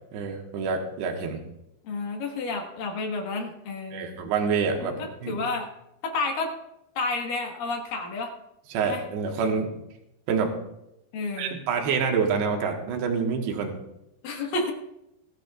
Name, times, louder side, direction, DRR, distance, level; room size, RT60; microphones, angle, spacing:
voice 1, 0.1-1.4 3.9-5.4 8.7-9.7 10.3-10.6 11.4-13.8, right 5 dB, 80° right, 2 dB, 3.5 m, -27 dB
voice 2, 1.8-4.2 4.8-5.7 6.0-6.5 7.0-8.3 8.8-9.0 11.1-11.6 14.2-14.7, left 3 dB, 60° left, 2 dB, 2.9 m, -30 dB
20.5 x 13.0 x 2.4 m, 0.86 s
omnidirectional pair, 4.9 m